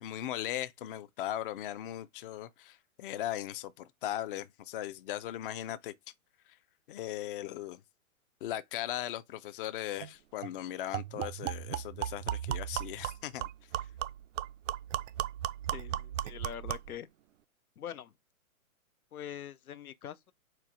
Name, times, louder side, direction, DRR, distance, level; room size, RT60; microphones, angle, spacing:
voice 1, 0.0-5.9 6.9-7.8 8.4-13.5, left 12 dB, 40° left, 0.5 m, -38 dB
sound 1, 10.0-10.1 10.4-10.5 10.9-17.0, right 12 dB, 60° right, 0.5 m, -36 dB
voice 2, 15.7-17.1 17.8-18.1 19.1-20.3, left 10 dB, 90° left, 0.6 m, -43 dB
4.5 x 2.5 x 4.8 m
hypercardioid pair, 135°, 43 cm